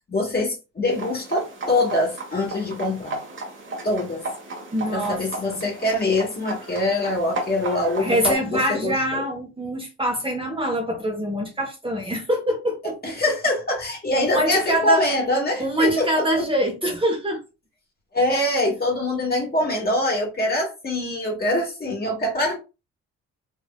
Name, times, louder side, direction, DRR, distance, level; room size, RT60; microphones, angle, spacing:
voice 1, 0.1-3.2 3.8-4.3 4.9-9.2 13.0-16.5 18.1-22.6, left 1 dB, 30° left, 1.8 m, -24 dB
sound 1, 0.9-8.3, right 2 dB, 40° right, 1.2 m, -34 dB
voice 2, 4.7-5.2 5.5-5.6 8.0-13.2 14.2-15.1 15.6-17.4, right 1 dB, 15° right, 1.0 m, -24 dB
3.5 x 2.6 x 2.3 m
cardioid pair, 90°, 30 cm